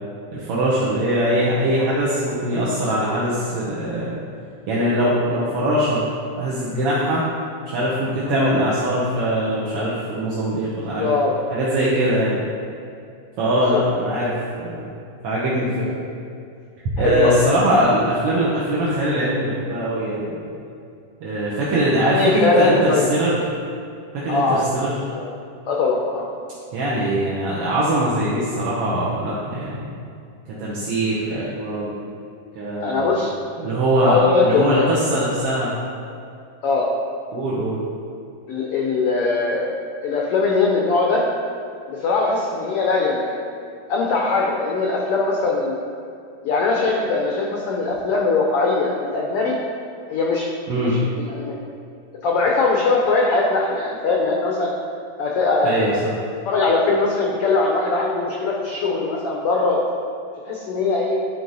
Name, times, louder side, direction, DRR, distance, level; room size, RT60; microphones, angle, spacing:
voice 1, 0.3-4.1 4.7-6.1 6.4-7.2 7.7-11.2 11.5-12.4 13.4-14.9 15.2-15.8 17.0-20.5 21.2-23.4 24.1-24.9 26.7-29.9 30.6-31.9 32.5-33.2 33.6-35.7 37.3-37.8 50.7-51.0 55.6-55.9, right 1 dB, 60° right, -7 dB, 1.6 m, -22 dB
voice 2, 11.0-11.3 13.6-13.8 17.0-17.4 22.0-23.1 24.3-24.6 25.1-25.2 25.7-26.3 32.8-33.3 34.0-34.9 36.6-36.9 38.5-39.8 40.0-41.2 41.9-43.4 43.9-45.8 46.4-49.6 50.1-50.5 50.7-51.5 52.2-54.7 55.2-56.0 56.4-59.8 60.4-61.2, left 3 dB, 85° left, -1 dB, 1.2 m, -21 dB
11.0 x 4.6 x 4.0 m, 2.4 s
omnidirectional pair, 3.6 m